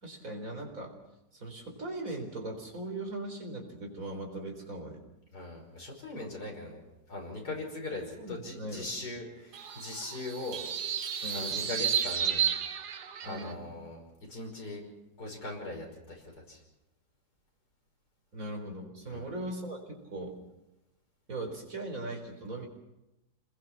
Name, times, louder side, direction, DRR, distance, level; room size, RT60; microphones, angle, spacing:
voice 1, 0.0-0.9 1.3-5.0 8.2-8.9 11.2-11.7 13.2-13.7 18.3-20.3 21.3-22.7, right 1 dB, 55° right, 2 dB, 4.7 m, -39 dB
voice 2, 5.3-6.8 7.1-10.6 11.3-12.4 13.2-14.0 14.3-14.8 15.2-16.6 19.1-19.2, left 2 dB, 80° left, 0 dB, 6.0 m, -40 dB
sound 1, 9.5-13.5, right 8 dB, 80° right, 1.7 m, -32 dB
27.5 x 21.0 x 6.0 m, 0.94 s
omnidirectional pair, 1.7 m